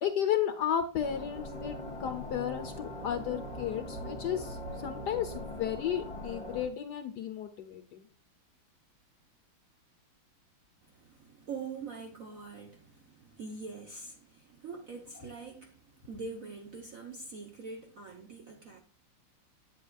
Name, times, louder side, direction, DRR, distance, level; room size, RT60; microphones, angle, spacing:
voice 1, 0.0-8.1, left 9 dB, 65° left, 1.1 m, -33 dB
sound 1, 1.0-6.7, equal, 20° left, 1.2 m, -41 dB
voice 2, 10.8-18.8, right 4 dB, 60° right, 0.9 m, -44 dB
9.0 x 7.4 x 2.3 m
omnidirectional pair, 2.4 m